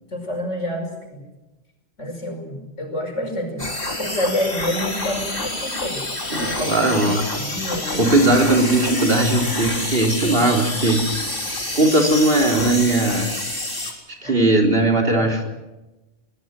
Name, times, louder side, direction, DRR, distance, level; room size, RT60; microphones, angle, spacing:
voice 1, 0.1-1.2 2.0-3.7 4.0-6.0 6.6-8.0 14.2-14.4 15.1-15.3, left 1 dB, 85° left, 3 dB, 5.8 m, -28 dB
sound 1, 3.6-13.9, left 2 dB, 45° left, 4.0 m, -27 dB
voice 2, 6.3-7.2 8.0-11.0 11.7-13.3 14.2-15.5, right 2 dB, 50° right, 2 dB, 4.0 m, -18 dB
22.0 x 19.5 x 7.8 m, 1.0 s
omnidirectional pair, 1.2 m